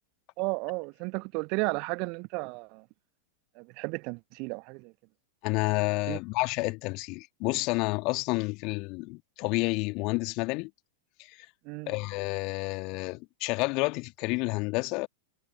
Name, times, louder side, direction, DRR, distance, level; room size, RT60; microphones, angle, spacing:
voice 1, 0.4-2.8 3.6-4.9 6.1-6.2 11.6-11.9, right 31 dB, 45° right, 1.1 m, -33 dB
voice 2, 5.4-10.7 11.2-11.5 11.9-15.1, left 26 dB, 40° left, 1.7 m, -30 dB
figure-of-eight pair, 90°, 0 cm